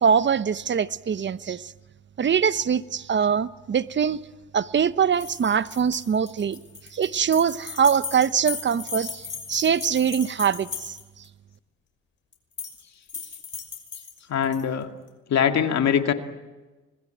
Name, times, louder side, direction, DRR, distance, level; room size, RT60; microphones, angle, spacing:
voice 1, 0.0-1.7 2.2-4.2 4.5-6.6 6.9-11.0, right 7 dB, 40° right, 0.9 m, -23 dB
sound 1, 5.1-11.3 12.3-12.8 13.1-14.6, left 5 dB, 40° left, 5.9 m, -37 dB
voice 2, 14.3-14.9 15.3-16.1, left 8 dB, 60° left, 2.2 m, -22 dB
25.5 x 20.5 x 9.0 m
cardioid pair, 90°, 30 cm